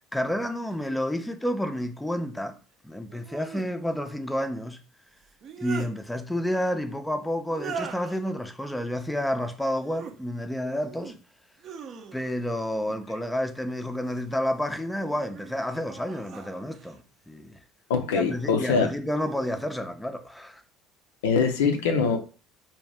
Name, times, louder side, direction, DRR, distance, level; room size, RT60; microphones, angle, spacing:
voice 1, 0.1-2.6 2.8-4.8 5.6-11.1 12.1-17.0 17.3-17.6 18.1-20.6, equal, 5° left, 0.4 m, -30 dB
sound 1, 0.7-0.8 3.1-3.7 5.2-5.9 7.5-8.2 9.7-10.2 10.7-11.2 11.6-12.5 13.7-14.3 15.0-17.0 18.1-18.5 19.1-19.7, right 6 dB, 50° right, 0.5 m, -41 dB
voice 2, 17.9-18.9 21.2-22.2, left 5 dB, 80° left, 0.4 m, -23 dB
2.6 x 2.1 x 3.3 m
hypercardioid pair, 70°, 0 cm